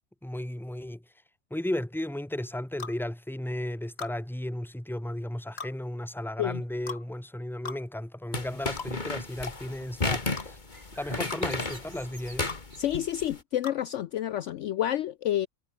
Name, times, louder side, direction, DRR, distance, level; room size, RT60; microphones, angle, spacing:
voice 1, 0.2-1.1 1.5-10.6 10.9-12.5, left 1 dB, ahead, 1.6 m, -34 dB
sound 1, 2.8-3.0 4.0-4.2 5.6-5.7 6.9-7.0 7.6-7.8 8.8-8.9 9.4-9.6 10.4-10.5 11.3-11.4 12.5-12.6 13.6-13.8, left 5 dB, 50° left, 1.8 m, -38 dB
sound 2, 8.3-13.4, left 3 dB, 35° left, 2.3 m, -33 dB
sound 3, 10.7-13.4, right 3 dB, 70° right, 4.4 m, -49 dB
voice 2, 12.8-15.5, left 12 dB, 65° left, 0.9 m, -29 dB
omnidirectional pair, 1.4 m